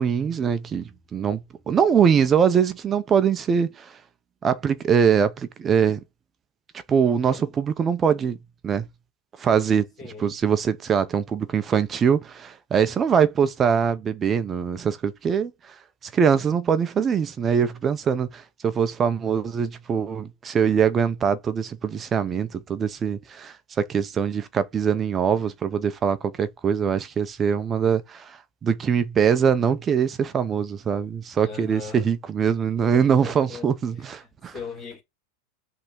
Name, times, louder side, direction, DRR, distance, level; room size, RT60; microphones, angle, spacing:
voice 1, 0.0-1.4 1.7-3.9 4.4-6.0 6.9-8.4 8.6-8.9 9.4-9.8 10.2-15.7 16.1-23.6 23.9-34.5, right 7 dB, 15° right, 0.5 m, -23 dB
voice 2, 7.0-7.5 10.0-10.3 31.4-32.1 32.8-33.7 33.9-34.2 34.5-35.0, left 5 dB, 15° left, 2.7 m, -39 dB
5.5 x 3.4 x 5.6 m
supercardioid pair, 175°, 0 cm